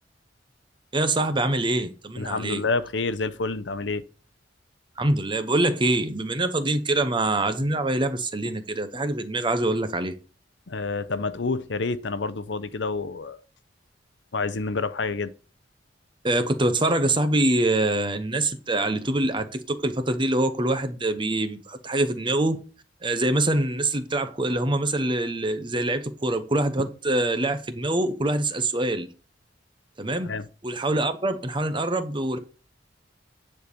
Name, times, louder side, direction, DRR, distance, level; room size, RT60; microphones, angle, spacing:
voice 1, 0.9-2.6 5.0-10.1 16.2-22.6 23.0-29.1 30.0-30.3 30.6-32.4, right 2 dB, 25° right, 0.9 m, -24 dB
voice 2, 2.2-4.0 10.7-13.4 14.3-15.3 30.2-30.4, left 3 dB, 70° left, 0.7 m, -28 dB
10.0 x 4.3 x 6.9 m
head